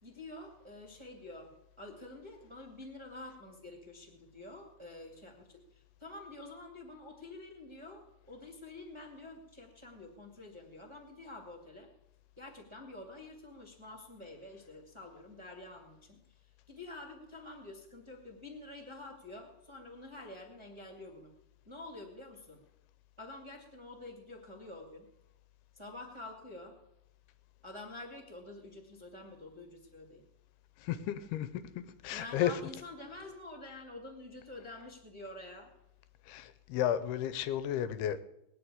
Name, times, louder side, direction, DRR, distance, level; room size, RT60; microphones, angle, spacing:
voice 1, 0.0-1.5 1.8-11.9 12.4-21.3 21.6-22.6 23.2-25.1 25.7-26.8 27.6-30.2 32.1-35.7, left 2 dB, 15° right, 0.9 m, -48 dB
voice 2, 30.8-32.5 36.3-38.2, left 11 dB, 80° left, 2.7 m, -33 dB
20.0 x 6.8 x 9.7 m
omnidirectional pair, 4.8 m